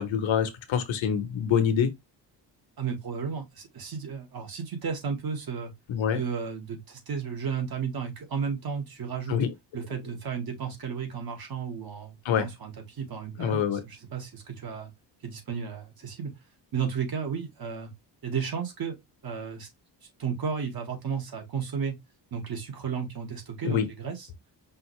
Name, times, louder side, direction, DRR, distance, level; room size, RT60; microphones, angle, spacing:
voice 1, 0.0-1.9 5.9-6.2 9.3-9.5 12.2-12.5 13.4-13.8 23.6-23.9, left 8 dB, 85° left, 1.2 m, -25 dB
voice 2, 2.8-5.7 6.1-9.4 9.7-14.9 15.2-16.3 16.7-17.9 18.2-19.0 19.2-19.7 20.2-22.0 22.3-24.3, right 6 dB, 50° right, 1.9 m, -33 dB
5.4 x 2.7 x 3.2 m
cardioid pair, 130°, 45 cm